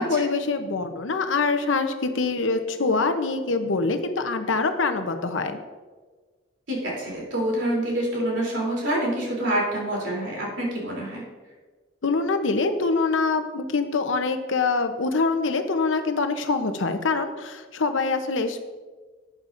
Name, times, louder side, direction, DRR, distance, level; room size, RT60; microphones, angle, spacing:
voice 1, 0.0-5.6 12.0-18.6, left 3 dB, 80° left, 8 dB, 0.8 m, -24 dB
voice 2, 6.7-11.2, right 1 dB, 75° right, -3 dB, 3.2 m, -27 dB
12.5 x 8.8 x 2.6 m, 1.4 s
head